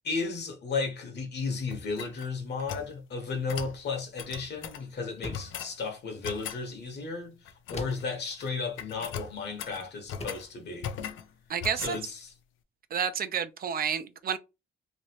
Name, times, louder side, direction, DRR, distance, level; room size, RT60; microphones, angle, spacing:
voice 1, 0.0-11.0 11.7-12.3, left 4 dB, 60° left, 1.2 m, -34 dB
sound 1, 1.7-2.9 3.5-3.8 4.2-4.8 5.3-5.8 6.2-6.6 7.4-8.0 8.3-8.5 8.8-10.5 10.8-11.3 11.6-12.0, left 8 dB, 80° left, 0.5 m, -39 dB
sound 2, 5.2-5.6 7.7-8.2 9.5-9.6 10.2-10.5, left 2 dB, 30° left, 0.8 m, -39 dB
voice 2, 11.5-12.0 12.9-14.4, right 7 dB, 50° right, 0.5 m, -30 dB
3.1 x 2.6 x 2.9 m
cardioid pair, 90°, 20 cm